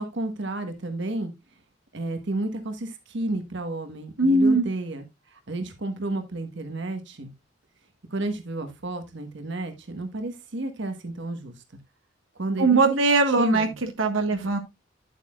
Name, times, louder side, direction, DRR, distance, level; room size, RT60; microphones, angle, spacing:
voice 1, 0.0-1.3 1.9-7.3 8.1-11.6 12.4-13.0 13.4-13.7 14.3-14.4, right 2 dB, 65° right, 1.4 m, -32 dB
voice 2, 4.2-4.7 12.6-14.6, right 3 dB, 85° right, 1.4 m, -20 dB
10.5 x 8.1 x 2.4 m
head